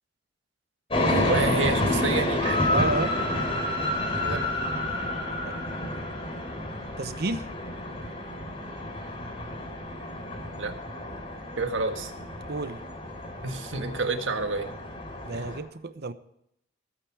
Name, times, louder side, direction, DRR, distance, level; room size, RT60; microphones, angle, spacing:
sound 1, 0.9-15.6, left 1 dB, 30° left, 3.8 m, -29 dB
voice 1, 1.0-2.7 4.2-4.5 10.6-10.8 11.6-12.1 13.4-14.8 15.3-15.5, right 3 dB, 85° right, 6 dB, 1.7 m, -29 dB
voice 2, 2.7-3.1 5.4-5.5 7.0-7.5 12.5-12.8 15.2-16.1, right 3 dB, 55° right, 11 dB, 0.9 m, -30 dB
20.5 x 9.1 x 4.8 m, 0.77 s
head